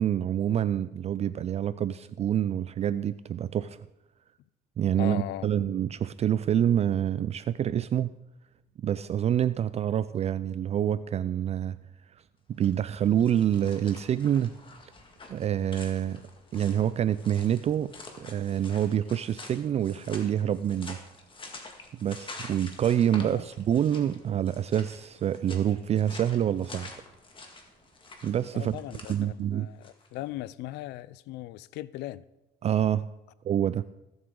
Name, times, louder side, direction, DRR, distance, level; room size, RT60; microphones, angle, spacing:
voice 1, 0.0-3.8 4.8-8.1 8.8-11.8 12.5-14.6 15.3-16.2 16.5-17.9 18.2-21.0 21.9-26.9 28.2-28.7 29.1-29.7 32.6-33.1 33.4-33.8, right 10 dB, 40° right, 0.4 m, -27 dB
voice 2, 5.0-5.5 23.2-23.5 28.5-32.2, left 16 dB, 85° left, 0.4 m, -38 dB
sound 1, 12.5-30.1, left 3 dB, 30° left, 1.9 m, -48 dB
19.0 x 8.0 x 3.8 m
cardioid pair, 110°, 17 cm